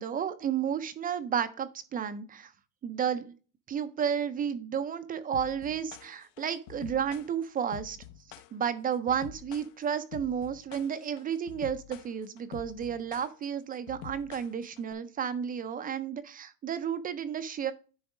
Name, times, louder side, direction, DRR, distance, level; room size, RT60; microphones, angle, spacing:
voice 1, 0.0-2.5 2.8-3.3 3.7-8.0 8.5-17.7, right 8 dB, 20° right, 11 dB, 0.3 m, -32 dB
sound 1, 5.3-14.9, left 11 dB, 65° left, 0.8 m, -47 dB
10.0 x 3.5 x 4.8 m, 0.36 s
supercardioid pair, 125°, 50 cm